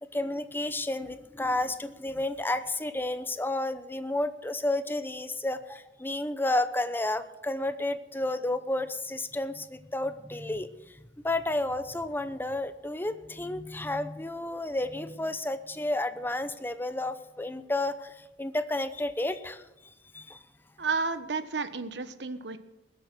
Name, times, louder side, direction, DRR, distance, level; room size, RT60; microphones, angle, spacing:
voice 1, 0.1-10.7 11.2-19.6 20.1-20.4, left 2 dB, 10° left, 11 dB, 0.7 m, -31 dB
voice 2, 20.8-22.6, right 4 dB, 80° right, 11 dB, 1.1 m, -31 dB
20.5 x 8.1 x 6.1 m, 0.95 s
head